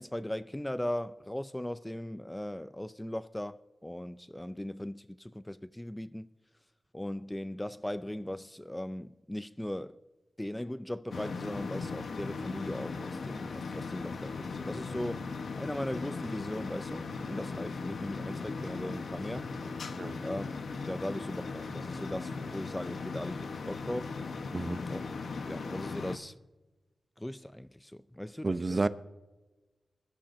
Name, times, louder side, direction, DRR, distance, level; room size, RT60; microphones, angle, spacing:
voice 1, 0.0-6.3 6.9-10.0 10.4-19.5 20.2-20.5 20.9-24.1 24.9-25.0 25.5-26.3 27.2-28.8, left 1 dB, 10° left, 0.4 m, -38 dB
sound 1, 11.1-26.2, left 4 dB, 80° left, 1.0 m, -38 dB
voice 2, 24.5-24.8 28.4-28.9, right 3 dB, 40° right, 0.6 m, -30 dB
22.0 x 12.5 x 2.7 m
wide cardioid pair, 75°, 0 cm